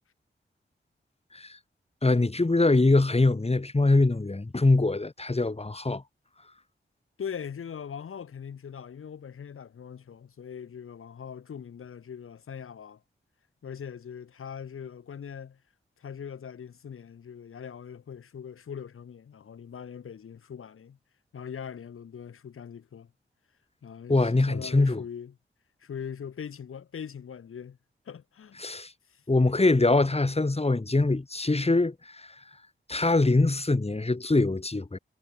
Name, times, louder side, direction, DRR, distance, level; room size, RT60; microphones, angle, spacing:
voice 1, 2.0-6.0 24.1-25.0 28.6-28.9 29.3-32.3 32.9-35.0, left 2 dB, 30° left, 3.2 m, -23 dB
voice 2, 7.2-13.0 13.6-15.6 16.0-21.0 21.3-23.1 23.8-25.4 25.8-27.8 28.0-28.8 29.1-29.2 30.0-30.2, left 7 dB, 85° left, 4.3 m, -41 dB
cardioid pair, 50°, 21 cm